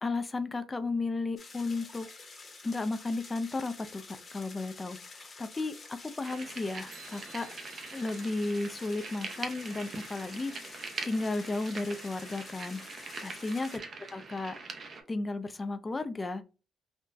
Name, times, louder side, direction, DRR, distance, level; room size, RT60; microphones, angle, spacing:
voice 1, 0.0-2.1 2.6-7.5 7.9-12.8 13.2-13.8 14.1-14.6 15.1-16.4, left 3 dB, 25° left, 10 dB, 0.4 m, -34 dB
sound 1, 1.4-13.8, left 3 dB, 40° left, 0.9 m, -49 dB
sound 2, 6.2-15.0, right 4 dB, 50° right, 0.7 m, -43 dB
sound 3, 6.9-9.5, right 8 dB, 85° right, 0.9 m, -59 dB
3.8 x 2.2 x 2.6 m, 0.33 s
cardioid pair, 90°, 0 cm